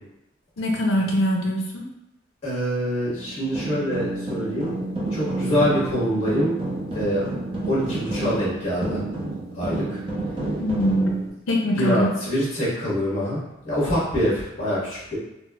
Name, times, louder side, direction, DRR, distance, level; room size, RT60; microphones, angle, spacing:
voice 1, 0.6-1.9 10.6-11.2 11.5-12.1, equal, 80° left, 0 dB, 0.5 m, -22 dB
voice 2, 2.4-4.7 5.1-6.5 6.9-7.2 7.7-9.0 9.5-10.0 11.7-15.2, equal, 30° left, -8 dB, 1.2 m, -25 dB
sound 1, 3.1-11.3, right 2 dB, 25° right, 0.6 m, -30 dB
3.9 x 2.0 x 2.2 m, 0.87 s
head